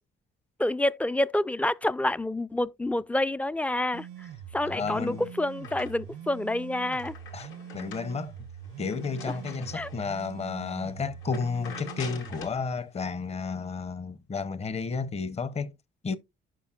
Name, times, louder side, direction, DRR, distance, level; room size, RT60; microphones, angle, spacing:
voice 1, 0.6-4.3 4.5-7.1 9.7-9.9, left 1 dB, 5° left, 0.3 m, -28 dB
sound 1, 3.9-12.5, right 9 dB, 85° right, 0.7 m, -43 dB
voice 2, 4.6-5.3 7.3-8.3 8.8-15.7 16.0-16.2, left 5 dB, 30° left, 0.8 m, -32 dB
sound 2, 4.7-6.3 6.6-10.3 10.7-10.9 11.2-12.6, left 6 dB, 85° left, 2.2 m, -46 dB
11.5 x 5.4 x 2.3 m
cardioid pair, 90°, 20 cm